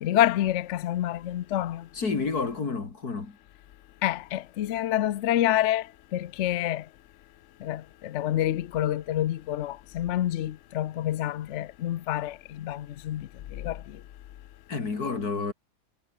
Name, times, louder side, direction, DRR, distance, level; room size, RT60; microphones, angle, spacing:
voice 1, 0.0-1.9 4.0-5.9 6.1-6.8 7.6-13.8, left 13 dB, 60° left, 0.8 m, -27 dB
voice 2, 1.9-3.4 14.7-15.5, left 4 dB, 90° left, 3.3 m, -30 dB
omnidirectional pair, 1.6 m